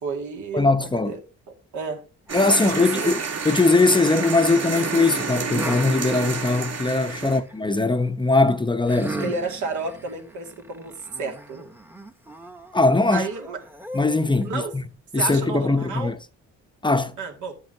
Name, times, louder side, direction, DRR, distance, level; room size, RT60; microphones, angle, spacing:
voice 1, 0.0-1.2 1.7-2.0 2.5-3.2 7.2-7.4 9.2-11.7 13.1-13.6 14.4-14.8 15.2-16.2 17.2-17.5, right 4 dB, 75° right, 2.4 m, -31 dB
voice 2, 0.5-1.1 2.3-3.1 3.4-9.3 12.7-13.3 13.9-14.8 15.1-16.1 16.8-17.2, left 3 dB, 15° left, 0.7 m, -20 dB
sound 1, 2.3-7.4, right 5 dB, 55° right, 2.7 m, -29 dB
sound 2, 3.3-4.5 5.5-7.6 8.9-14.5, right 1 dB, 5° right, 1.0 m, -38 dB
12.0 x 7.8 x 2.8 m
cardioid pair, 90°, 30 cm